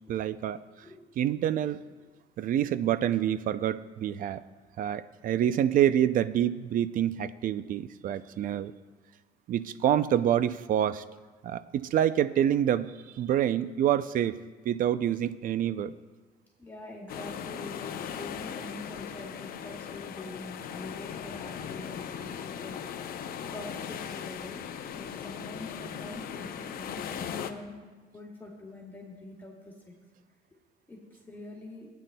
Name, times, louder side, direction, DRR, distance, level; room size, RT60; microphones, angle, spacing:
voice 1, 0.1-0.6 1.2-1.8 2.4-4.4 4.8-8.7 9.5-11.0 11.4-14.4 14.7-15.9, right 10 dB, 55° right, 14 dB, 0.4 m, -27 dB
voice 2, 16.6-23.2 23.5-24.6 24.9-27.8 28.1-29.7 30.9-31.0 31.3-31.9, left 2 dB, 10° left, -3 dB, 2.3 m, -44 dB
sound 1, 17.1-27.5, left 8 dB, 60° left, 0.6 m, -38 dB
17.0 x 9.3 x 2.2 m, 1.3 s
cardioid pair, 110°, 17 cm